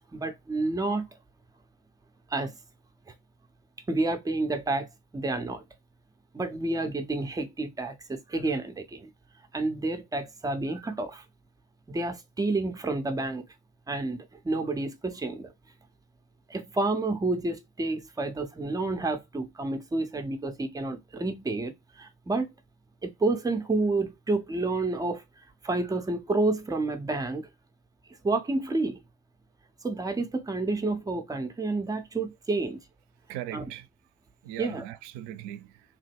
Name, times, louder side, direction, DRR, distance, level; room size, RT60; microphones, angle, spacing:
voice 1, 0.1-1.1 2.3-2.5 3.9-4.9 5.1-5.6 6.3-9.1 9.5-11.2 11.9-13.4 13.9-15.5 16.5-22.5 23.0-25.2 25.6-27.5 28.2-29.0 29.8-32.8 33.5-33.6 34.6-34.8, right 2 dB, 10° right, 0.4 m, -29 dB
voice 2, 33.3-33.9 34.4-36.0, right 12 dB, 60° right, 0.5 m, -39 dB
3.0 x 2.1 x 3.3 m
hypercardioid pair, 55°, 47 cm